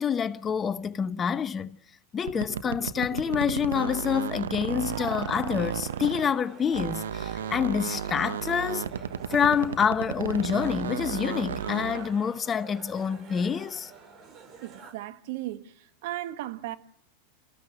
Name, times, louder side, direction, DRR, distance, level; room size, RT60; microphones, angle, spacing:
voice 1, 0.0-1.7 2.1-8.9 9.3-13.9, left 7 dB, 25° left, 0.9 m, -27 dB
sound 1, 2.2-6.4 6.7-12.1, right 8 dB, 85° right, 1.1 m, -33 dB
sound 2, 4.8-14.9, right 5 dB, 40° right, 6.6 m, -47 dB
voice 2, 14.6-15.8 16.0-16.8, right 15 dB, 65° right, 1.7 m, -35 dB
29.5 x 15.0 x 7.6 m
hypercardioid pair, 105°, 0 cm